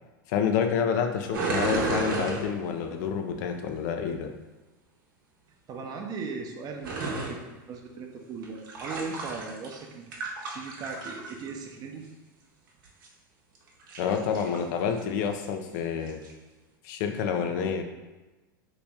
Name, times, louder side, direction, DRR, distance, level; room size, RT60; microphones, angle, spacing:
voice 1, 0.3-4.3 14.0-16.2 16.8-17.8, left 7 dB, 60° left, 5 dB, 0.5 m, -28 dB
sound 1, 1.3-2.9 6.8-7.3 8.4-9.8 10.1-11.5 12.8-13.1 13.7-14.6 15.0-15.1 15.4-15.5 16.1-16.3, right 3 dB, 75° right, 0.8 m, -32 dB
voice 2, 5.7-12.0, right 4 dB, 35° right, 3 dB, 0.6 m, -38 dB
2.9 x 2.9 x 3.5 m, 1.1 s
hypercardioid pair, 105°, 11 cm